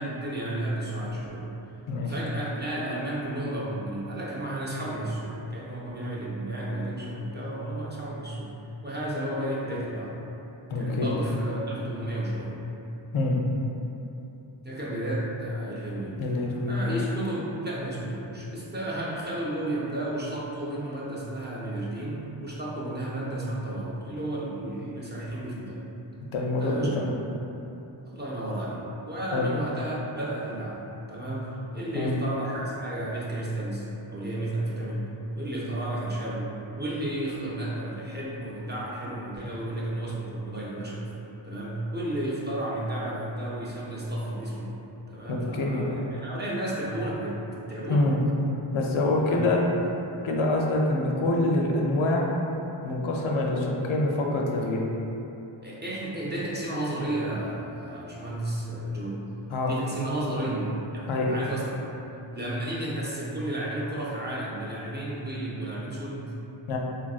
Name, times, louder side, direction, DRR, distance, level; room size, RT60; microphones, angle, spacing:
voice 1, 0.0-1.5 2.1-8.5 8.8-10.1 10.7-12.5 14.6-16.2 16.7-25.8 26.6-27.0 28.0-28.8 29.1-35.1 35.3-36.5 36.8-41.1 41.4-44.7 45.1-47.4 47.7-48.1 49.2-49.5 55.6-59.2 59.6-61.9 62.3-66.3, right 1 dB, 25° right, -6 dB, 0.4 m, -32 dB
voice 2, 10.7-11.1 13.1-13.4 16.2-16.8 26.3-27.1 29.3-29.5 31.9-32.1 45.3-45.9 47.9-48.2 48.7-49.6 50.2-52.3 52.8-54.8 59.5-59.7 61.1-61.3 66.7-66.8, left 2 dB, 85° left, -1 dB, 0.5 m, -25 dB
3.5 x 2.5 x 2.3 m, 3.0 s
wide cardioid pair, 110°, 47 cm